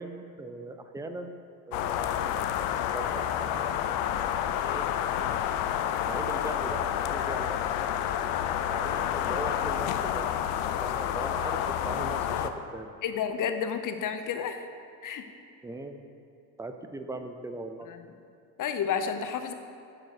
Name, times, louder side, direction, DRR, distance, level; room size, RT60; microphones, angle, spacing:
voice 1, 0.0-1.4 1.7-2.4 2.9-4.0 4.4-4.9 5.9-7.6 8.7-10.3 10.8-12.9 15.6-16.0 16.6-17.9, right 2 dB, 10° right, 7 dB, 0.3 m, -39 dB
sound 1, 1.7-12.5, left 10 dB, 75° left, 0.6 m, -29 dB
voice 2, 13.0-14.7 15.0-15.2 18.6-19.5, left 7 dB, 40° left, 8 dB, 0.7 m, -30 dB
9.0 x 3.9 x 6.4 m, 2.5 s
supercardioid pair, 85°, 50 cm